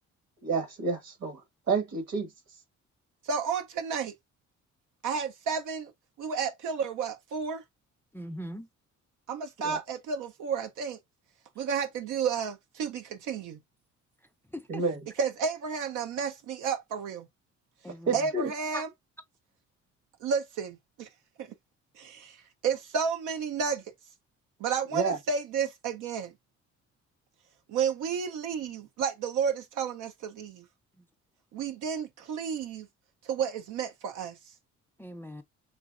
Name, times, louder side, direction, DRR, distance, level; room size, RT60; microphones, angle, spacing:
voice 1, 0.4-1.4 1.7-2.3 9.6-9.8 14.7-15.0 18.1-18.5 24.9-25.2, right 4 dB, 60° right, 1.4 m, -29 dB
voice 2, 3.2-4.1 5.0-5.9 6.2-7.6 9.3-11.0 11.6-13.6 15.2-17.3 18.1-18.9 20.2-21.1 21.4-21.5 22.0-22.4 22.6-23.8 24.6-26.3 27.7-30.6 31.5-32.9 33.2-34.3, right 6 dB, 80° right, 0.6 m, -31 dB
voice 3, 8.1-8.7 14.5-14.8 17.8-18.3 18.7-18.8 35.0-35.4, equal, 5° left, 0.4 m, -39 dB
3.8 x 3.0 x 2.4 m
cardioid pair, 90°, 30 cm